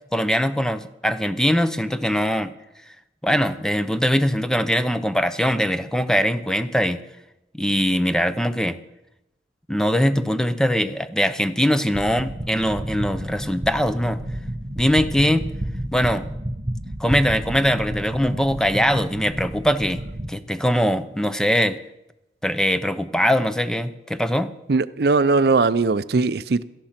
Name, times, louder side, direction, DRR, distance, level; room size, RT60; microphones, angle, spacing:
voice 1, 0.1-2.5 3.2-7.0 7.5-8.8 9.7-14.2 14.8-15.5 15.9-16.3 17.0-20.0 20.3-21.8 22.4-24.5, equal, 5° left, 0.7 m, -21 dB
sound 1, 11.9-20.3, right 1 dB, 30° right, 1.0 m, -31 dB
voice 2, 24.7-26.6, right 3 dB, 60° right, 0.5 m, -19 dB
18.0 x 13.0 x 5.9 m
head